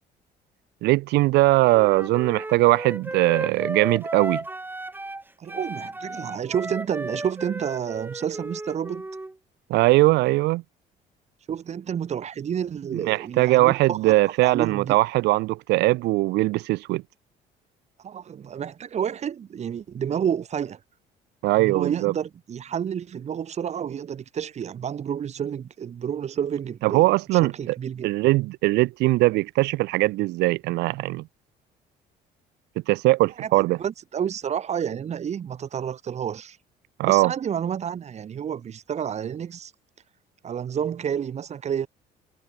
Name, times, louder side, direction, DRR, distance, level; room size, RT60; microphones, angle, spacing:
voice 1, 0.8-4.4 9.7-10.6 13.1-17.0 21.4-22.1 26.8-27.8 28.0-31.3 32.9-33.8 37.0-37.3, right 20 dB, 85° right, 1.2 m, -20 dB
Wind instrument woodwind instrument, 1.7-5.2 5.5-9.3, right 2 dB, 10° right, 4.7 m, -34 dB
voice 2, 5.4-9.1 11.5-14.1 14.4-14.9 18.0-20.8 21.5-28.1 33.4-33.5 33.8-36.6 37.0-39.7 40.4-41.9, right 8 dB, 40° right, 1.4 m, -30 dB
cardioid pair, 110°, 17 cm